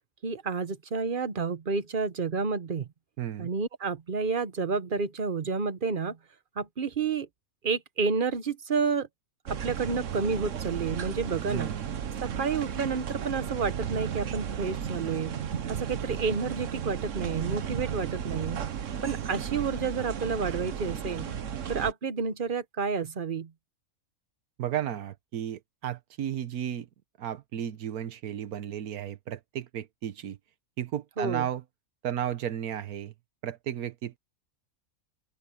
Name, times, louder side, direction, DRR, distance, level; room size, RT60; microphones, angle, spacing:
voice 1, 0.2-2.9 3.4-6.2 6.6-7.3 7.6-9.1 9.5-11.7 12.2-15.4 15.7-18.7 19.0-21.3 21.7-23.5 31.2-31.5, right 5 dB, 40° right, 1.0 m, -30 dB
voice 2, 3.2-3.5 11.5-11.9 24.6-26.9 27.2-30.4 30.8-31.6 32.0-33.1 33.4-34.2, right 10 dB, 90° right, 1.4 m, -34 dB
sound 1, 9.5-21.9, right 8 dB, 60° right, 1.3 m, -34 dB
open air
omnidirectional pair, 1.5 m